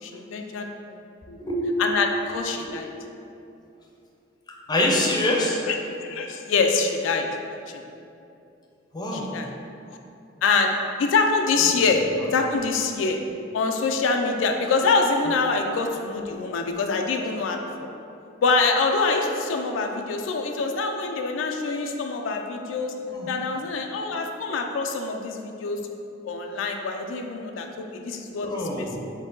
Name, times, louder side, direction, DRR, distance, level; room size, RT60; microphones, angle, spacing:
voice 1, 0.0-1.0 1.3-1.4 1.8-2.9 5.6-5.7 6.1-7.3 7.7-7.8 9.1-9.5 10.4-13.2 13.5-17.6 18.4-22.9 23.3-25.8 26.2-28.5 28.8-28.9, left 4 dB, 90° left, 3 dB, 0.4 m, -25 dB
voice 2, 4.7-5.6 8.9-9.3 11.6-11.7 12.2-12.3 15.3-15.4 23.0-23.3 28.4-29.0, left 1 dB, 20° left, -2 dB, 0.5 m, -26 dB
4.5 x 2.8 x 3.8 m, 2.6 s
head